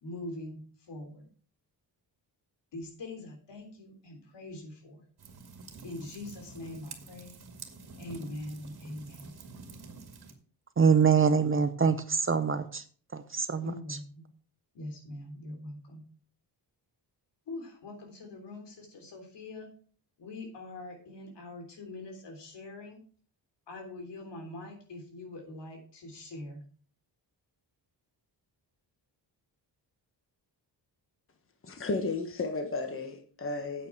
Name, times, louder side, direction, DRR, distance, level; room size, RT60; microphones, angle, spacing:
voice 1, 0.0-1.3 2.7-5.1 5.8-7.3 8.0-9.4 13.6-14.3 14.7-16.0 17.5-19.7 20.2-23.0 23.7-26.6, left 2 dB, 75° left, 3.6 m, -43 dB
sound 1, 5.2-10.3, right 4 dB, 60° right, 2.1 m, -48 dB
voice 2, 10.8-12.8 13.1-13.7, right 6 dB, 30° right, 0.7 m, -24 dB
voice 3, 31.6-33.9, left 3 dB, 30° left, 1.3 m, -33 dB
8.7 x 8.5 x 4.7 m
wide cardioid pair, 140°, 43 cm